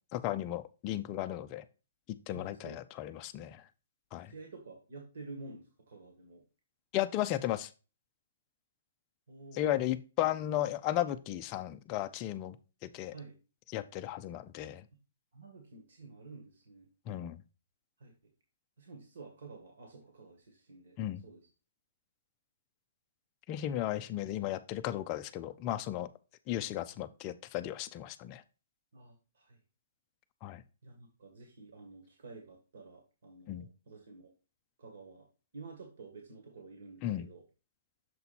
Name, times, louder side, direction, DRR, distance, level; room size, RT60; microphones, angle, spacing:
voice 1, 0.1-1.6 2.1-3.6 4.1-4.3 6.9-7.7 9.5-12.6 12.8-13.1 13.7-14.8 17.1-17.4 21.0-21.2 23.5-26.1 26.5-28.4 30.4-30.6 33.5-33.7 37.0-37.3, left 13 dB, 20° left, 9 dB, 0.4 m, -35 dB
voice 2, 2.3-2.8 4.3-6.4 9.3-9.6 13.1-13.3 15.3-16.9 18.0-18.1 18.8-21.0 21.2-21.4 28.9-29.6 30.8-34.3 34.8-35.2 35.5-37.4, right 3 dB, 55° right, 2 dB, 1.7 m, -50 dB
6.8 x 4.2 x 4.1 m, 0.32 s
hypercardioid pair, 180°, 0 cm